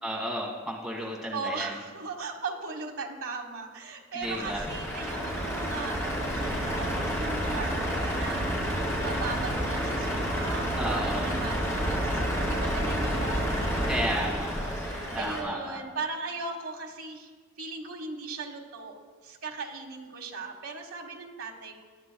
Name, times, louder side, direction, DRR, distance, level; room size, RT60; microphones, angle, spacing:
voice 1, 0.0-1.7 4.1-4.6 10.8-11.3 13.9-14.5 15.1-15.8, equal, 5° right, -3 dB, 1.9 m, -32 dB
voice 2, 1.3-8.5 8.9-17.3 17.6-21.8, right 4 dB, 75° right, 2 dB, 1.5 m, -38 dB
Truck, 4.2-15.4, equal, 15° left, 2.6 m, -29 dB
19.0 x 11.0 x 2.3 m, 1.5 s
head